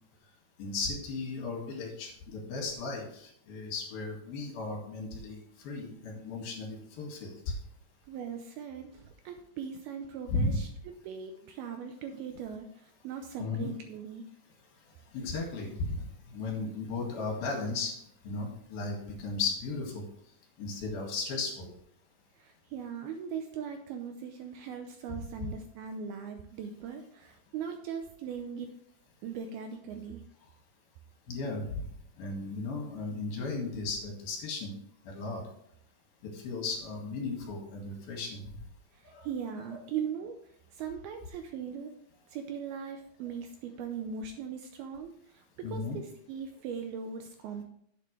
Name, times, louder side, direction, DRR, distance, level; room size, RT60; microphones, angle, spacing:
voice 1, 0.6-7.5 10.3-10.6 13.4-13.7 15.1-18.0 18.2-20.0 20.6-21.7 25.4-25.5 31.3-31.8 32.2-34.7 35.1-35.4 36.3-38.4 39.1-39.3 39.7-39.8 45.6-46.0, left 3 dB, 60° left, 0 dB, 3.6 m, -35 dB
voice 2, 8.1-14.2 22.4-28.7 29.2-30.2 38.9-40.4 40.7-41.9 42.3-47.6, right 7 dB, 80° right, 5 dB, 2.3 m, -39 dB
10.5 x 8.4 x 3.2 m, 0.70 s
omnidirectional pair, 5.0 m